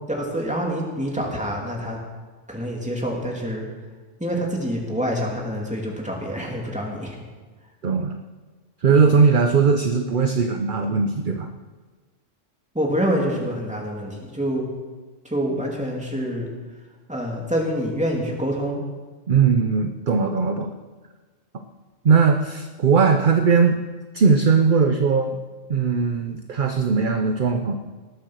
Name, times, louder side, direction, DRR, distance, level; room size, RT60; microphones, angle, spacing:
voice 1, 0.1-2.0 2.5-3.7 4.2-7.2 12.7-14.7 15.2-16.5 17.1-18.8, equal, 5° right, -2 dB, 2.6 m, -26 dB
voice 2, 7.8-8.1 8.8-11.5 19.3-20.7 21.5-21.6 22.0-23.8 24.1-25.4 25.7-27.8, right 5 dB, 45° right, 6 dB, 0.8 m, -19 dB
19.0 x 7.9 x 6.4 m, 1.3 s
omnidirectional pair, 1.3 m